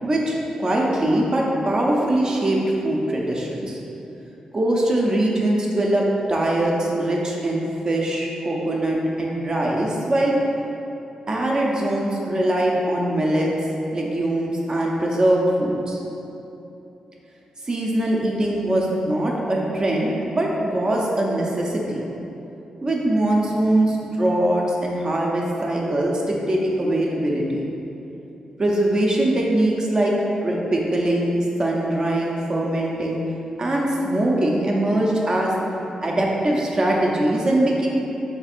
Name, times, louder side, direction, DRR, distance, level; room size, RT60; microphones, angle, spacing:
voice 1, 0.0-3.8 4.5-10.4 11.3-13.5 13.9-16.0 17.6-22.0 22.8-27.7 28.6-30.1 30.4-33.2 33.6-35.5 36.0-37.9, right 1 dB, 40° right, -2 dB, 0.5 m, -22 dB
3.4 x 2.5 x 4.2 m, 3.0 s
cardioid pair, 75°, 2 cm